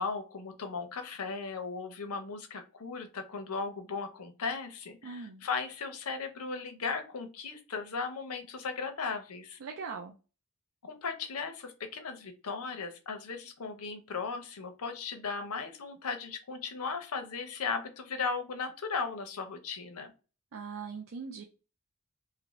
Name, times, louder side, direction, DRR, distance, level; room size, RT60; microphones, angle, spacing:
voice 1, 0.0-9.6 10.8-20.1, left 5 dB, 75° left, 6 dB, 0.7 m, -37 dB
voice 2, 5.0-5.4 9.6-10.1 20.5-21.4, right 5 dB, 60° right, 3 dB, 0.4 m, -40 dB
2.7 x 2.5 x 3.0 m, 0.33 s
head